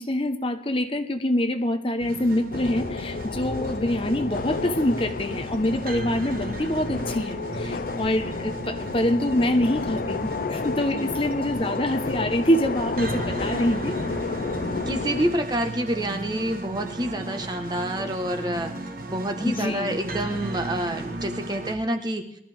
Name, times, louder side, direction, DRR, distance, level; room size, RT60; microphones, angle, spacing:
voice 1, 0.0-14.0 19.4-20.0, left 1 dB, 30° left, 7 dB, 1.0 m, -25 dB
sound 1, 2.0-21.8, right 2 dB, 50° right, 1.5 m, -36 dB
sound 2, 2.5-15.4, left 4 dB, 50° left, 0.5 m, -31 dB
Scratching (performance technique), 6.4-6.5 6.9-7.2 7.9-8.2 8.6-8.9 9.6-10.0 10.3-10.7 11.3-11.7 12.0-12.3, equal, 90° right, 2.9 m, -49 dB
voice 2, 10.8-11.2 14.9-18.7 19.1-22.2, right 1 dB, 25° right, 5 dB, 1.3 m, -28 dB
22.0 x 13.5 x 3.5 m, 0.74 s
head